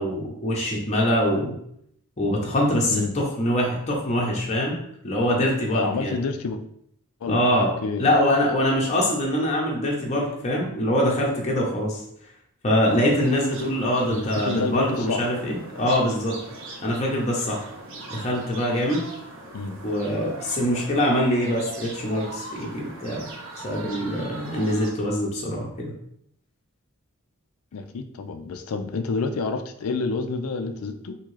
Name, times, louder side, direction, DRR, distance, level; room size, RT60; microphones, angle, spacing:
voice 1, 0.0-1.5 2.2-4.8 5.0-6.2 7.3-7.7 8.0-12.0 12.6-16.4 16.8-17.6 18.1-19.0 19.8-23.2 23.6-25.9, equal, 30° left, -2 dB, 0.7 m, -24 dB
voice 2, 5.7-6.6 7.2-8.2 14.1-15.3 19.5-19.8 27.7-31.2, left 4 dB, 75° left, 9 dB, 0.4 m, -29 dB
sound 1, 12.8-24.9, right 2 dB, 60° right, 0.7 m, -40 dB
3.6 x 2.8 x 3.1 m, 0.71 s
head